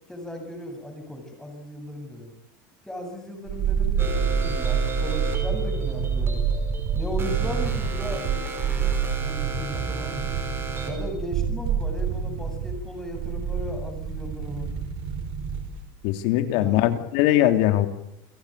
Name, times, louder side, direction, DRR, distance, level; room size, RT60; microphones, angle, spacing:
voice 1, 0.1-2.3 2.8-6.4 6.9-10.2 10.8-14.7 16.5-16.8, left 1 dB, 5° left, 4 dB, 7.9 m, -37 dB
sound 1, 3.5-15.9 16.1-16.2, right 6 dB, 50° right, 5.1 m, -27 dB
sound 2, 4.0-11.1, right 3 dB, 20° right, 5.8 m, -35 dB
voice 2, 16.0-17.9, left 13 dB, 65° left, 8 dB, 3.2 m, -21 dB
29.0 x 15.5 x 9.4 m, 0.84 s
supercardioid pair, 145°, 11 cm